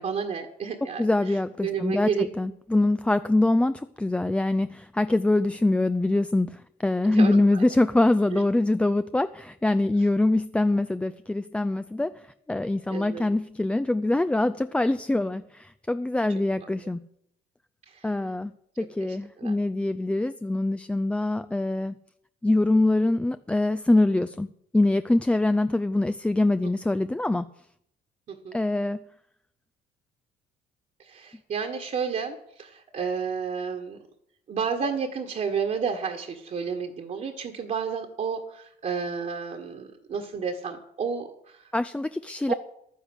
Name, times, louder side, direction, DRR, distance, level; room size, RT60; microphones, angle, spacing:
voice 1, 0.0-1.3 1.6-2.3 7.1-7.6 8.3-8.4 12.9-13.2 17.9-18.1 19.1-19.5 28.3-28.6 31.0-34.0 34.5-41.6 42.5-42.6, right 6 dB, 45° right, 2 dB, 1.7 m, -31 dB
voice 2, 1.0-17.0 18.0-18.5 18.8-21.9 22.4-24.5 24.7-27.5 28.5-29.0 41.7-42.5, left 2 dB, 5° left, 11 dB, 0.4 m, -24 dB
11.5 x 10.0 x 8.1 m, 0.73 s
cardioid pair, 110°, 17 cm